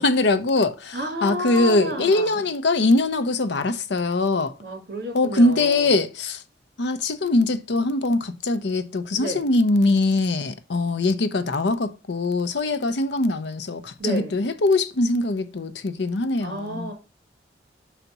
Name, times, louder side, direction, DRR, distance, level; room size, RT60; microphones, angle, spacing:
voice 1, 0.0-4.5 5.1-6.4 6.8-16.9, left 2 dB, 70° left, 0.6 m, -22 dB
voice 2, 0.9-2.5 4.6-6.0 9.2-9.4 14.0-14.4 16.4-16.9, right 1 dB, 55° right, 2.5 m, -31 dB
5.8 x 4.0 x 5.8 m
head